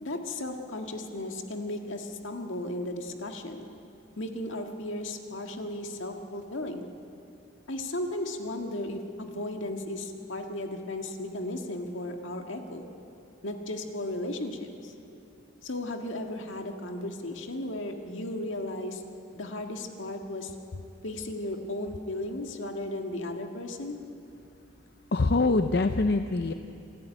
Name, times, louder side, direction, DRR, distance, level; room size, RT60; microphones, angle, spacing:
voice 1, 0.0-3.7 4.2-6.8 7.7-12.9 13.4-14.9 15.6-19.0 19.3-20.5 21.0-24.0, left 1 dB, 75° left, 4 dB, 1.8 m, -35 dB
voice 2, 25.1-26.5, left 3 dB, 55° left, 8 dB, 0.6 m, -24 dB
27.0 x 13.5 x 9.0 m, 2.7 s
head